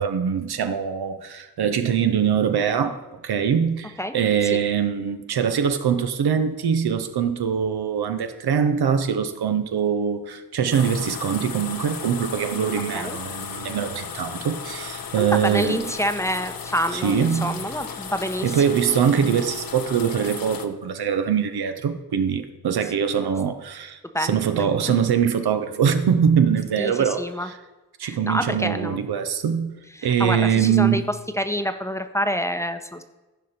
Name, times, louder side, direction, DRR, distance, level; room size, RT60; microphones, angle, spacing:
voice 1, 0.0-15.8 17.0-17.6 18.4-27.2 28.0-29.7 30.0-31.0, right 7 dB, 75° right, 0.8 m, -23 dB
sound 1, 10.7-20.7, left 7 dB, 60° left, 0.9 m, -35 dB
voice 2, 15.2-18.7 22.8-22.9 24.1-24.4 26.8-27.5 28.0-29.0 29.9-31.0 31.3-33.0, equal, 5° left, 0.8 m, -27 dB
14.5 x 5.1 x 4.3 m
cardioid pair, 50°, 38 cm